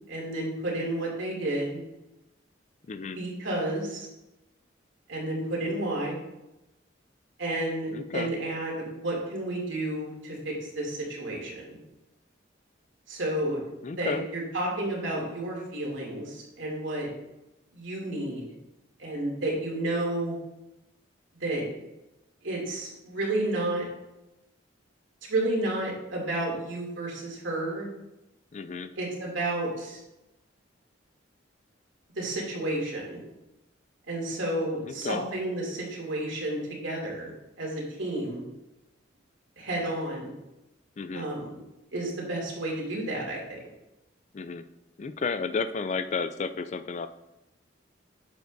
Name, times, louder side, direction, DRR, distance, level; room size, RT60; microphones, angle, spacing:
voice 1, 0.1-1.8 3.2-4.1 5.1-6.2 7.4-11.6 13.1-13.6 14.0-17.1 17.7-18.5 19.0-20.4 21.4-21.6 22.4-23.8 25.3-27.9 29.0-30.0 32.2-33.2 34.1-37.3 37.6-38.4 39.6-40.3 41.1-41.5 41.9-43.6, right 1 dB, 85° right, -2 dB, 2.6 m, -31 dB
voice 2, 2.9-3.2 7.9-8.3 13.8-14.3 28.5-28.9 34.8-35.2 41.0-41.3 44.3-44.6 45.0-47.1, left 4 dB, 35° left, 11 dB, 0.3 m, -32 dB
9.1 x 7.2 x 2.6 m, 0.95 s
head